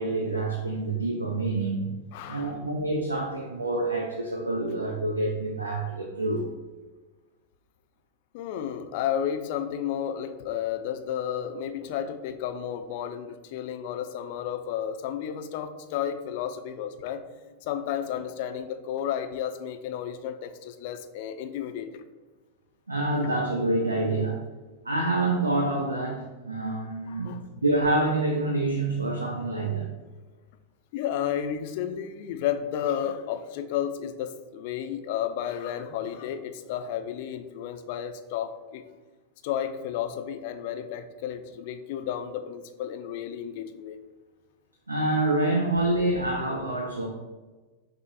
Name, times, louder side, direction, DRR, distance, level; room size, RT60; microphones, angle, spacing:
voice 1, 0.0-2.0 2.3-6.5 22.9-24.4 24.8-29.9 44.9-47.1, right 2 dB, 80° right, 1 dB, 0.4 m, -27 dB
voice 2, 2.1-2.6 8.3-17.2 17.6-22.0 27.1-27.5 30.9-38.8 39.4-44.0, left 9 dB, 50° left, 8 dB, 0.3 m, -32 dB
5.8 x 2.0 x 2.7 m, 1.2 s
figure-of-eight pair, 90°, 0 cm